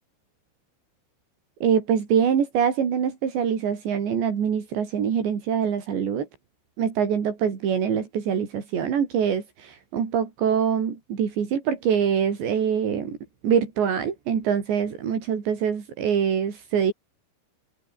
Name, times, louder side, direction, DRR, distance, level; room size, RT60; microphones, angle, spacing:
voice 1, 1.6-6.3 6.8-13.2 13.4-16.9, right 7 dB, 80° right, 6.1 m, -24 dB
omnidirectional pair, 5.1 m